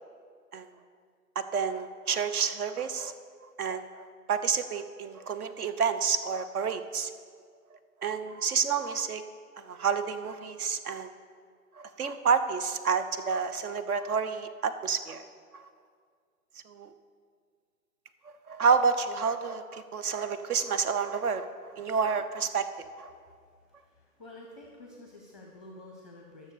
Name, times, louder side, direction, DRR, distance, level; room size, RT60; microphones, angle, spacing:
voice 1, 1.3-3.1 3.6-3.9 4.3-7.1 8.0-9.2 9.6-11.2 11.8-15.2 15.5-15.6 16.7-16.9 18.5-21.5 21.8-22.7 23.0-23.1, right 6 dB, 70° right, 11 dB, 1.0 m, -29 dB
voice 2, 23.9-26.5, left 1 dB, ahead, 0 dB, 0.6 m, -49 dB
13.0 x 6.6 x 6.6 m, 2.1 s
hypercardioid pair, 145°, 46 cm